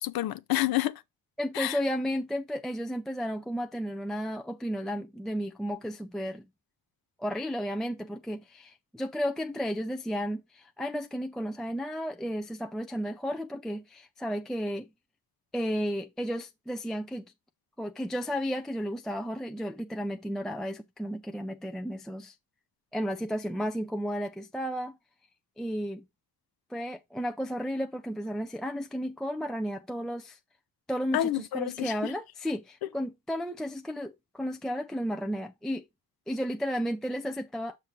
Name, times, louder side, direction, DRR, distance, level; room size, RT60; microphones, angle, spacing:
voice 1, 0.0-1.0 1.5-1.8 31.1-32.1, left 14 dB, 85° left, 0.6 m, -29 dB
voice 2, 1.4-6.5 7.2-14.9 15.5-17.3 17.8-22.3 22.9-25.0 25.6-26.0 26.7-30.4 30.9-35.8 36.3-37.8, equal, ahead, 0.3 m, -33 dB
6.7 x 6.5 x 2.9 m
wide cardioid pair, 150°, 35 cm